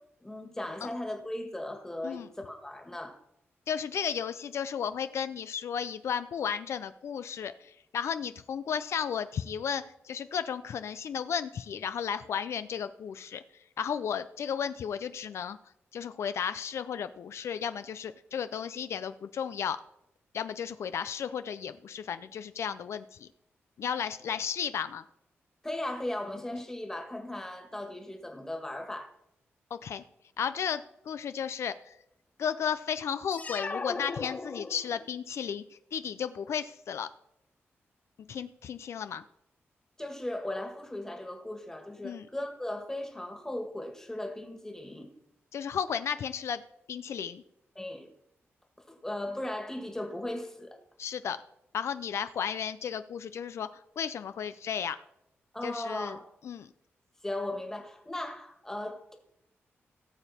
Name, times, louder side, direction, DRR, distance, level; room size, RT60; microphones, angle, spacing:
voice 1, 0.2-3.2 25.6-29.1 40.0-45.1 47.8-48.1 48.9-50.8 55.5-56.3 57.2-59.1, left 1 dB, 10° left, 1.7 m, -37 dB
voice 2, 3.7-7.5 7.9-13.4 13.8-15.6 15.9-19.8 20.3-23.3 23.8-25.0 29.7-30.0 30.4-31.7 32.4-35.6 35.9-37.1 38.3-39.2 42.0-42.3 45.5-46.6 46.9-47.4 51.0-51.4 51.7-53.7 54.0-55.0 55.6-56.2 56.5-56.7, left 7 dB, 75° left, 0.4 m, -34 dB
sound 1, 33.3-35.2, left 3 dB, 30° left, 0.8 m, -37 dB
17.0 x 7.0 x 4.2 m
wide cardioid pair, 110°, 5 cm